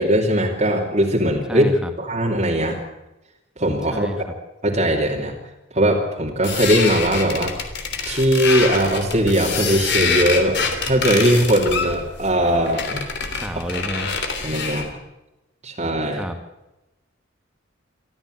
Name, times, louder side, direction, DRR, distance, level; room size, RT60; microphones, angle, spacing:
voice 1, 0.0-1.7 2.0-2.8 3.6-4.1 4.6-5.4 5.7-7.6 8.1-13.1 14.4-14.9 15.6-16.2, right 1 dB, 35° right, -3 dB, 2.9 m, -20 dB
voice 2, 1.5-1.9 3.9-4.2 13.4-14.1 16.1-16.4, equal, 5° right, 5 dB, 2.0 m, -29 dB
sound 1, 6.4-14.9, left 5 dB, 55° left, 3.2 m, -26 dB
25.5 x 14.0 x 7.9 m, 0.96 s
head